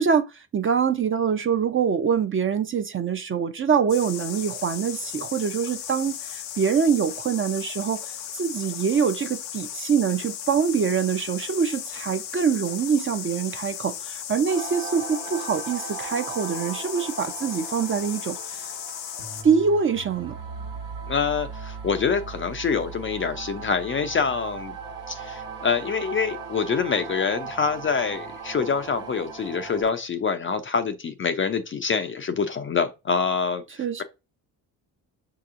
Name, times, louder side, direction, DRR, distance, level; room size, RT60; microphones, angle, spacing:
voice 1, 0.0-8.0 8.4-18.6 19.4-20.4 33.8-34.0, right 6 dB, 30° right, 0.5 m, -24 dB
sound 1, 3.9-19.4, left 10 dB, 90° left, 0.6 m, -36 dB
sound 2, 14.5-29.8, right 5 dB, 75° right, 1.2 m, -38 dB
voice 2, 21.1-24.7 25.1-34.0, left 5 dB, 30° left, 0.4 m, -26 dB
5.8 x 2.8 x 2.5 m
supercardioid pair, 65°, 44 cm